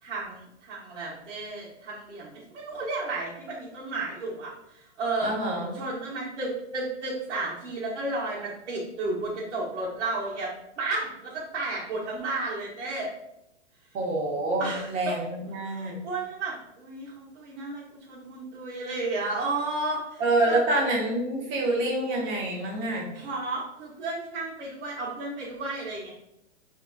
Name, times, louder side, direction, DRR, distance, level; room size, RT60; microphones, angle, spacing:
voice 1, 0.0-5.3 5.7-13.1 14.6-15.2 15.6-20.6 23.1-26.1, right 2 dB, 75° right, -7 dB, 1.1 m, -33 dB
voice 2, 5.2-5.8 13.9-16.0 20.2-23.1, right 2 dB, 30° right, -2 dB, 1.0 m, -27 dB
3.8 x 2.8 x 2.3 m, 0.84 s
hypercardioid pair, 140°, 36 cm